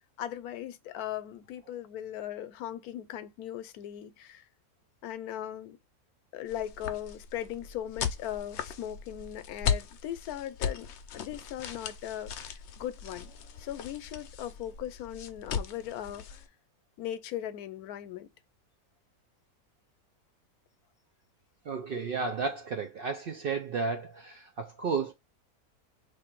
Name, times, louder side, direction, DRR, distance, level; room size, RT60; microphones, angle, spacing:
voice 1, 0.2-4.5 5.0-5.8 6.3-10.9 11.1-13.3 13.6-16.4 17.0-18.3, left 11 dB, 80° left, 1.1 m, -38 dB
sound 1, 6.5-16.5, left 7 dB, 65° left, 0.7 m, -37 dB
voice 2, 21.7-25.1, right 4 dB, 75° right, 0.5 m, -33 dB
3.1 x 2.5 x 4.4 m
omnidirectional pair, 1.6 m